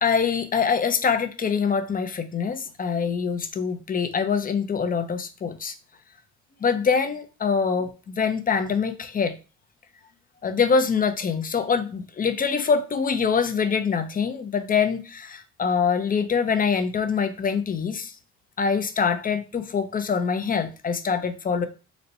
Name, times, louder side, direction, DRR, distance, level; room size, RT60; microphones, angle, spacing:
voice 1, 0.0-5.7 6.6-9.3 10.4-18.1 18.6-21.7, left 6 dB, 30° left, 0.5 m, -24 dB
4.1 x 2.2 x 3.9 m
cardioid pair, 90°, 30 cm